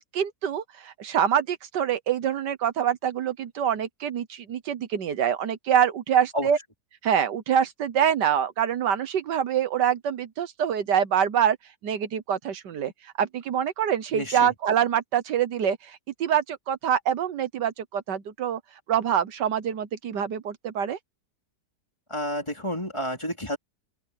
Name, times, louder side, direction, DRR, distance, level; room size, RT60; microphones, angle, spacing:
voice 1, 0.0-6.6 7.0-11.6 11.8-18.6 18.9-21.0, right 9 dB, 75° right, 1.7 m, -25 dB
voice 2, 14.1-14.5 22.1-23.6, equal, 15° left, 3.1 m, -30 dB
open air
omnidirectional pair, 1.9 m